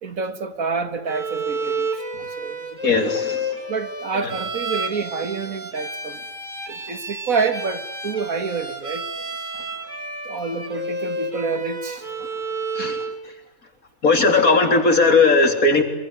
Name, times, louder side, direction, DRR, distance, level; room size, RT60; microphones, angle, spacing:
voice 1, 0.0-1.9 2.4-2.9 3.7-6.2 6.7-9.0 10.3-12.1 12.8-12.9 14.7-14.8, right 4 dB, 80° right, 2.4 m, -28 dB
Bowed string instrument, 1.1-13.2, right 1 dB, 35° right, 3.6 m, -30 dB
voice 2, 2.8-3.5 4.2-4.3 12.8-13.0 14.0-15.8, left 3 dB, 80° left, 4.1 m, -17 dB
26.5 x 23.0 x 9.8 m
omnidirectional pair, 1.5 m